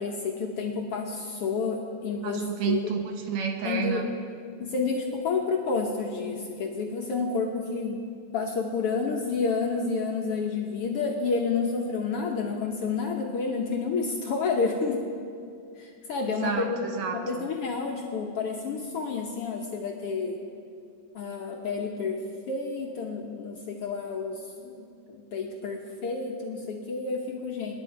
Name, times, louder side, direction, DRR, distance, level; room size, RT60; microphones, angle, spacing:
voice 1, 0.0-2.9 3.6-4.1 4.6-8.1 8.3-15.0 15.8-16.8 17.1-20.4 21.1-22.2 22.5-27.7, left 4 dB, 65° left, 1 dB, 1.6 m, -30 dB
voice 2, 2.2-4.1 16.3-17.4, right 7 dB, 70° right, 5 dB, 2.1 m, -30 dB
25.5 x 11.0 x 4.7 m, 2.3 s
omnidirectional pair, 3.6 m